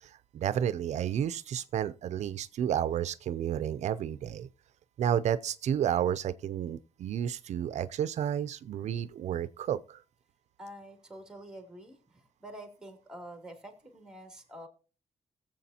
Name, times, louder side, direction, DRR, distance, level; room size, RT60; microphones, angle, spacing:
voice 1, 0.0-4.5 5.0-10.0, right 9 dB, 75° right, 0.4 m, -31 dB
voice 2, 10.6-14.7, right 1 dB, 5° right, 2.8 m, -47 dB
19.5 x 7.6 x 2.8 m
cardioid pair, 120°, 12 cm